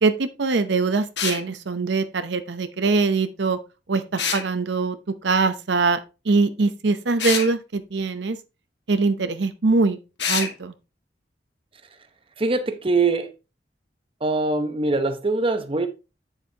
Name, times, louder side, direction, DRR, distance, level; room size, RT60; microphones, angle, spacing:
voice 1, 0.0-3.6 3.9-5.0 5.2-6.0 6.2-8.4 8.9-10.0 10.3-10.7, right 3 dB, 75° right, 0.7 m, -22 dB
sound 1, 1.2-1.4 4.2-4.5 7.2-7.5 10.2-10.5, left 6 dB, 70° left, 1.6 m, -25 dB
voice 2, 12.4-13.3 14.2-15.9, right 3 dB, 30° right, 0.8 m, -22 dB
8.3 x 7.3 x 2.8 m
head